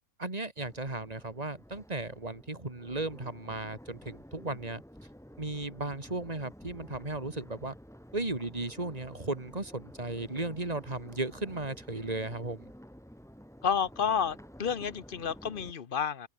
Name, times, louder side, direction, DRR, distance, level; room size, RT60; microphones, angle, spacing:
voice 1, 0.2-4.8 5.4-7.7 8.1-12.7, right 2 dB, 25° right, 3.0 m, -35 dB
Crowd, 0.6-15.7, equal, ahead, 3.1 m, -51 dB
voice 2, 13.6-16.3, left 7 dB, 40° left, 0.9 m, -30 dB
open air
omnidirectional pair, 1.7 m